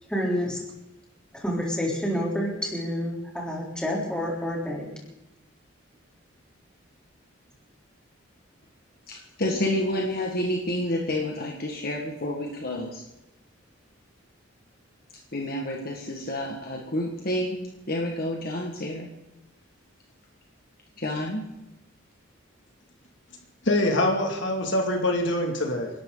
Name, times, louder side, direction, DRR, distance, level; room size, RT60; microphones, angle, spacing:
voice 1, 0.1-0.6 1.3-4.9, equal, 5° left, -3 dB, 3.6 m, -28 dB
voice 2, 9.1-13.0 15.3-19.1 21.0-21.4, left 1 dB, 50° left, 0 dB, 1.8 m, -29 dB
voice 3, 23.6-25.9, left 1 dB, 65° left, 2 dB, 2.6 m, -24 dB
28.5 x 12.0 x 4.0 m, 0.92 s
head